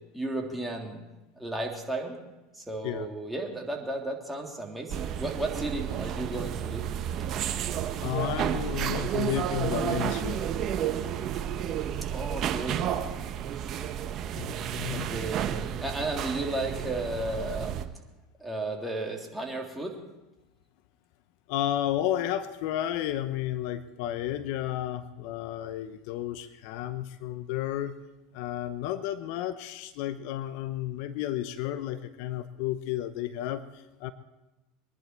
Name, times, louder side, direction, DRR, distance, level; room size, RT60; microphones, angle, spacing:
voice 1, 0.1-1.0 1.4-2.2 2.5-6.8 12.1-12.9 14.9-17.8 18.4-20.0, right 2 dB, 5° right, 0 dB, 3.1 m, -34 dB
sound 1, 4.9-17.8, right 9 dB, 45° right, 1.1 m, -31 dB
voice 2, 8.0-10.5 14.4-15.1 21.5-27.9 28.3-34.1, left 12 dB, 65° left, 12 dB, 0.8 m, -32 dB
23.5 x 11.0 x 4.5 m, 1.0 s
hypercardioid pair, 90°, 0 cm